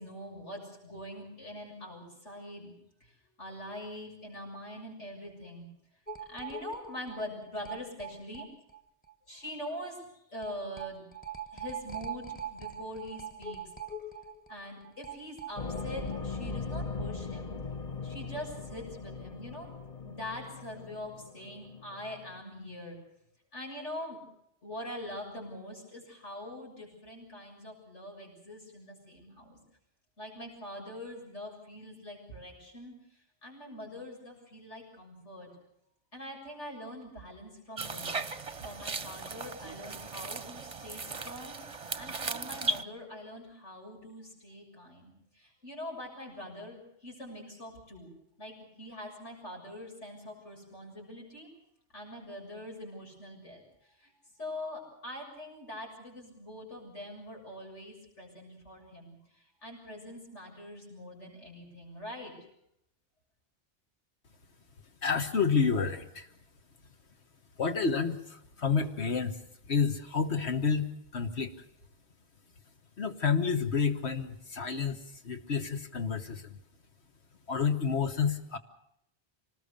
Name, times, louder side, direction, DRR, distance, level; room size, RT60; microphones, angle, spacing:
voice 1, 0.0-2.7 3.0-3.1 3.4-5.7 6.3-8.4 9.3-10.0 10.3-11.0 11.5-13.6 14.5-17.6 18.0-19.7 20.0-23.0 23.5-24.2 24.6-29.6 30.2-32.9 33.4-35.5 36.1-38.2 38.6-41.6 41.9-48.1 48.4-51.5 51.9-53.6 54.0-54.1 54.4-62.3, left 1 dB, 85° left, -1 dB, 7.6 m, -43 dB
sound 1, 6.1-8.8 9.1-9.2 9.4-9.5 10.4-16.2 16.5-16.6 16.8-16.9, right 5 dB, 10° left, 1.3 m, -42 dB
sound 2, 15.6-22.4, left 4 dB, 35° left, 1.2 m, -39 dB
sound 3, 37.8-42.8, right 3 dB, 30° right, 0.9 m, -37 dB
voice 2, 65.0-66.3 67.6-69.4 69.7-71.5 73.0-75.0 75.2-76.6 77.5-78.6, left 5 dB, 70° left, 7 dB, 1.7 m, -29 dB
25.5 x 20.0 x 6.7 m, 0.76 s
omnidirectional pair, 1.2 m